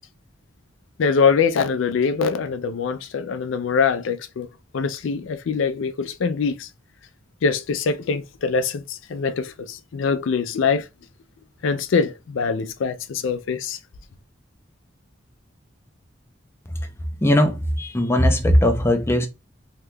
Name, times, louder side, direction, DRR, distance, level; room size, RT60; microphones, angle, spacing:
voice 1, 1.0-4.5 4.7-6.7 7.4-10.9 11.6-13.8, left 5 dB, 85° left, 0.4 m, -23 dB
voice 2, 17.2-19.3, left 1 dB, 15° left, 0.4 m, -19 dB
2.8 x 2.2 x 3.4 m
head